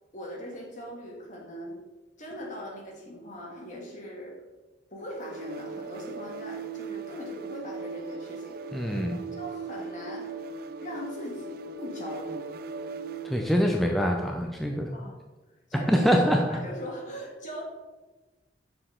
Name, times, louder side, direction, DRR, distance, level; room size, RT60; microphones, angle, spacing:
voice 1, 0.1-1.8 2.2-4.4 4.9-10.4 10.8-12.5 14.9-15.2 15.7-17.6, equal, 45° left, -1 dB, 1.8 m, -40 dB
sound 1, 5.1-13.5, right 3 dB, 55° right, 0.3 m, -38 dB
voice 2, 8.7-9.2 13.2-14.9 15.7-16.4, equal, ahead, 1 dB, 0.5 m, -24 dB
6.8 x 6.4 x 3.7 m, 1.2 s
head